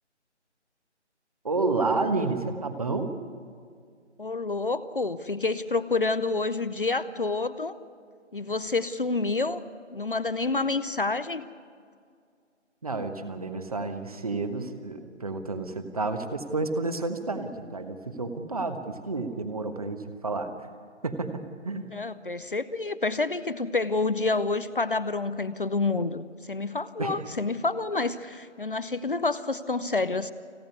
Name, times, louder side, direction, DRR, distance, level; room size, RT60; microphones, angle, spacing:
voice 1, 1.4-3.1 12.8-20.7 21.0-21.9 27.0-27.2, right 3 dB, 30° right, 8 dB, 1.3 m, -30 dB
voice 2, 4.2-7.8 8.3-9.6 9.9-11.5 21.9-30.3, left 3 dB, 45° left, 14 dB, 0.7 m, -28 dB
29.0 x 10.5 x 9.6 m, 2.2 s
figure-of-eight pair, 160°, 36 cm